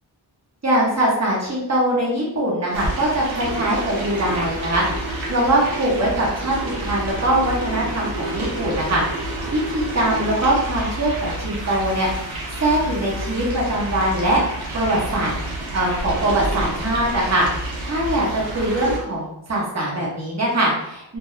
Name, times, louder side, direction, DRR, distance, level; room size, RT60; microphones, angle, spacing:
voice 1, 0.6-12.1 12.6-14.4 14.7-15.3 15.7-21.2, right 1 dB, 35° right, -5 dB, 1.0 m, -22 dB
sound 1, 2.7-19.0, right 1 dB, 85° right, 0.8 m, -29 dB
2.2 x 2.2 x 2.9 m, 0.81 s
wide cardioid pair, 90°, 46 cm